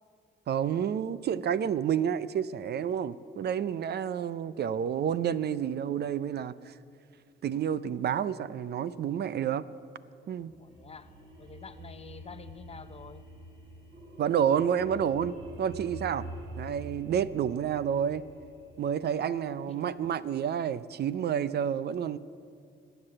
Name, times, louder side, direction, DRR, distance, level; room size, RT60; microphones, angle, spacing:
voice 1, 0.5-6.7 7.4-9.6 10.3-10.5 14.2-16.3 16.6-18.2 18.8-22.2, right 8 dB, 55° right, 16 dB, 0.5 m, -29 dB
sound 1, 10.2-19.6, right 1 dB, 80° right, 4.3 m, -46 dB
voice 2, 10.6-11.1 11.4-13.3 19.7-20.0, left 5 dB, 30° left, 12 dB, 0.8 m, -48 dB
19.0 x 8.0 x 8.8 m, 2.3 s
cardioid pair, 90°, 20 cm